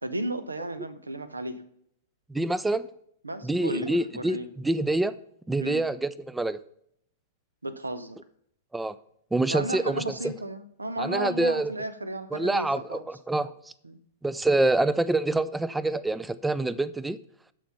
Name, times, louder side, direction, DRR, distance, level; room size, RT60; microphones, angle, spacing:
voice 1, 0.0-1.6 3.2-4.5 5.6-5.8 7.6-8.2 9.5-13.0 13.8-14.0, right 1 dB, 80° right, 13 dB, 0.9 m, -34 dB
voice 2, 2.3-2.9 3.4-5.1 5.5-6.6 8.7-8.9 9.3-10.0 11.0-11.7 12.3-13.5 14.2-17.2, right 2 dB, 5° right, 18 dB, 0.4 m, -26 dB
13.0 x 5.1 x 5.6 m, 0.70 s
figure-of-eight pair, 100°, 0 cm